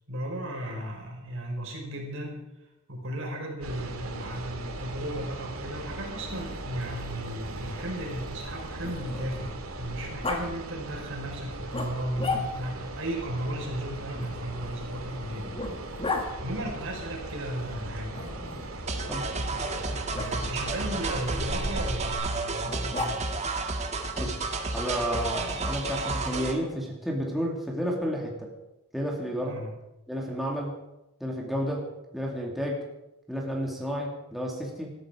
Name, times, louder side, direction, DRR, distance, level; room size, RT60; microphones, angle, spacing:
voice 1, 0.1-2.4 2.9-15.8 16.4-18.2 19.8-23.2 29.4-29.7, right 1 dB, 65° right, 1 dB, 5.1 m, -35 dB
sound 1, 3.6-22.1, right 1 dB, 80° right, 2.4 m, -38 dB
Growling, 6.1-9.5 10.2-10.4 11.7-12.8 14.2-16.3 18.1-18.8 20.1-20.3 22.7-23.5, left 3 dB, 25° left, 2.0 m, -36 dB
sound 2, 18.9-26.6, right 3 dB, 30° right, 1.7 m, -31 dB
voice 2, 24.7-28.5 28.9-29.6 30.1-30.7 31.2-31.9 32.1-32.8 33.3-34.9, equal, ahead, -2 dB, 2.5 m, -31 dB
19.5 x 13.5 x 5.0 m, 0.93 s
head